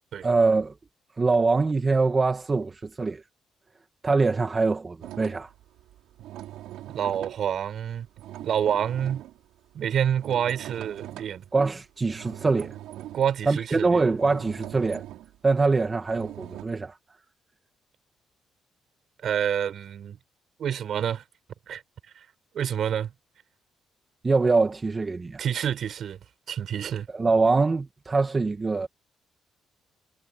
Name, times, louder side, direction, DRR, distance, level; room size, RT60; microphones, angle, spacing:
voice 1, 0.2-0.7 1.2-3.2 4.0-5.5 11.5-12.8 13.5-15.0 15.4-17.0 24.2-25.4 27.1-28.9, right 3 dB, 30° right, 1.8 m, -23 dB
sound 1, 5.0-11.6 12.1-16.7, right 13 dB, 90° right, 4.6 m, -42 dB
voice 2, 6.9-8.1 8.4-9.2 9.7-11.4 13.1-14.0 19.2-20.2 20.6-21.2 21.7-21.8 22.5-23.1 25.4-26.2 26.5-27.1, right 9 dB, 65° right, 7.1 m, -27 dB
cardioid pair, 90°, 0 cm